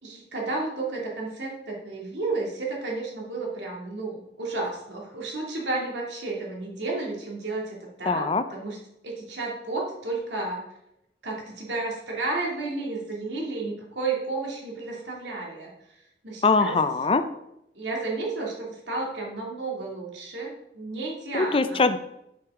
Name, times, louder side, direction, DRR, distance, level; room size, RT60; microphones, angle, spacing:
voice 1, 0.0-8.8 9.0-10.6 11.2-15.7 16.2-16.7 17.7-21.9, right 3 dB, 80° right, -2 dB, 2.6 m, -32 dB
voice 2, 8.1-8.4 16.4-17.3 21.3-22.0, left 4 dB, 30° left, 11 dB, 0.5 m, -22 dB
11.0 x 5.9 x 3.7 m, 0.82 s
head